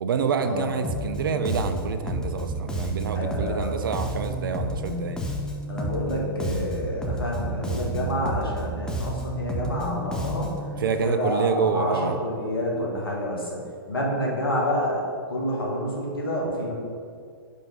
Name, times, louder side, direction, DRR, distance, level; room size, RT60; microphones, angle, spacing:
voice 1, 0.0-5.2 10.8-12.2, right 5 dB, 65° right, 9 dB, 0.6 m, -27 dB
Bass guitar, 0.8-10.7, right 1 dB, 5° left, 0.8 m, -30 dB
voice 2, 3.1-3.7 5.7-10.5 11.0-13.6 13.9-16.7, left 1 dB, 80° left, -2 dB, 1.8 m, -28 dB
5.4 x 5.4 x 5.3 m, 2.2 s
figure-of-eight pair, 105°, 12 cm